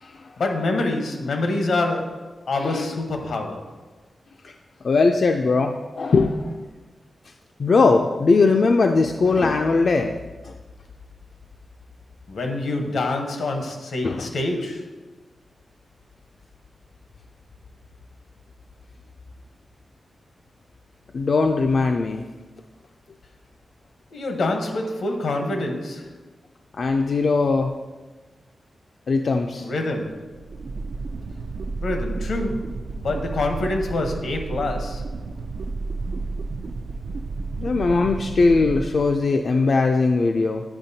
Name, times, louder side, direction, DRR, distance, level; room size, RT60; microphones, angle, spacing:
voice 1, 0.4-3.8 12.3-14.9 24.1-26.2 29.6-30.4 31.8-35.1, left 2 dB, 85° left, 4 dB, 0.9 m, -26 dB
voice 2, 4.8-6.5 7.6-10.1 10.4-10.5 14.0-14.3 21.1-22.2 26.8-27.7 29.1-29.7 37.6-40.6, left 3 dB, 55° left, 3 dB, 0.3 m, -20 dB
sound 1, 30.1-39.6, right 3 dB, 80° right, 0.3 m, -31 dB
8.7 x 5.7 x 2.7 m, 1.2 s
wide cardioid pair, 160°, 0 cm